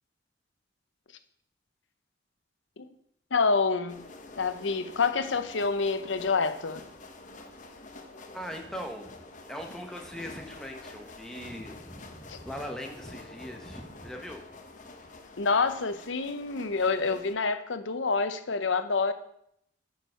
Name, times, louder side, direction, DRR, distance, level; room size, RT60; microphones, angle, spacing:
voice 1, 3.3-4.0 4.4-6.8 12.3-12.4 15.4-19.1, left 4 dB, 90° left, 10 dB, 0.8 m, -27 dB
sound 1, 3.9-17.3, left 2 dB, 40° left, 0.8 m, -48 dB
voice 2, 8.3-9.1 9.5-14.6, equal, 5° left, 3 dB, 1.1 m, -40 dB
9.4 x 4.8 x 6.4 m, 0.73 s
head